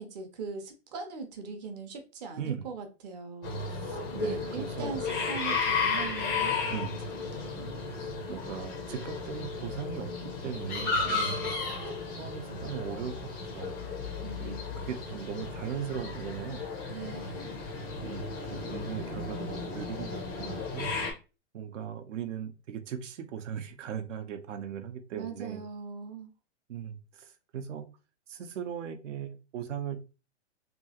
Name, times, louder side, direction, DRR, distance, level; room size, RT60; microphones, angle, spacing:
voice 1, 0.0-3.6 4.1-6.6 7.1-7.9 11.0-11.6 14.2-14.8 16.9-17.6 25.2-26.3, right 5 dB, 35° right, 0.6 m, -41 dB
sound 1, 3.4-21.1, left 4 dB, 20° left, 0.4 m, -34 dB
voice 2, 3.8-5.0 6.7-7.0 7.9-11.5 12.2-13.7 14.4-16.6 18.0-20.9 21.5-25.6 26.7-27.8 28.3-30.0, right 8 dB, 80° right, 0.7 m, -39 dB
2.9 x 2.3 x 2.7 m
hypercardioid pair, 150°, 36 cm